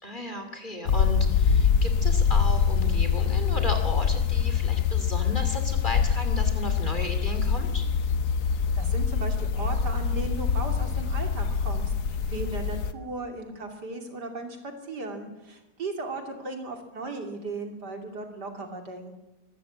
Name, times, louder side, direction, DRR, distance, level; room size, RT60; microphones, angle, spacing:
voice 1, 0.0-7.8, left 1 dB, 25° left, 6 dB, 2.8 m, -35 dB
sound 1, 0.9-12.9, left 6 dB, 65° left, 1.5 m, -24 dB
voice 2, 8.7-19.1, right 3 dB, 65° right, 5 dB, 3.3 m, -36 dB
24.0 x 14.5 x 8.6 m, 1.0 s
omnidirectional pair, 1.9 m